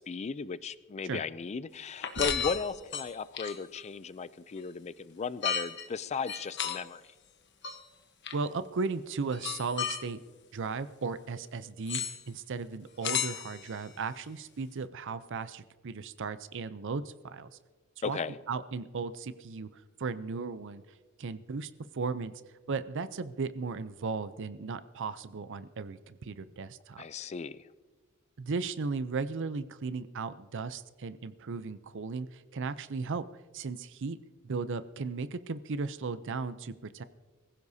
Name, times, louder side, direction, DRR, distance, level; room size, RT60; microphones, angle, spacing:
voice 1, 0.0-7.0 18.0-18.4 27.0-27.6, left 5 dB, 30° left, 16 dB, 0.4 m, -36 dB
sound 1, 2.0-3.8 5.4-5.9 6.3-6.8 7.6-7.8 8.3-8.4 9.3-10.0 11.9-12.2 13.0-13.8, left 8 dB, 55° left, 1.1 m, -33 dB
voice 2, 8.3-10.2 10.5-17.5 18.0-18.2 18.5-20.8 21.2-22.3 22.7-27.0 28.4-33.2 33.5-34.2 34.4-37.0, right 4 dB, 60° right, 13 dB, 0.6 m, -36 dB
23.0 x 15.5 x 2.8 m, 1.3 s
head